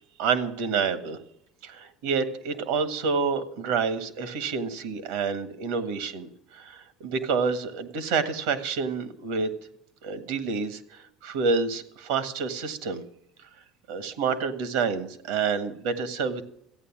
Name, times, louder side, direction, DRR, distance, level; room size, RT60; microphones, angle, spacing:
voice 1, 0.2-1.2 1.6-9.5 10.0-13.0 13.9-16.4, right 5 dB, 85° right, 11 dB, 1.7 m, -28 dB
14.0 x 9.0 x 7.4 m, 0.73 s
supercardioid pair, 105°, 0 cm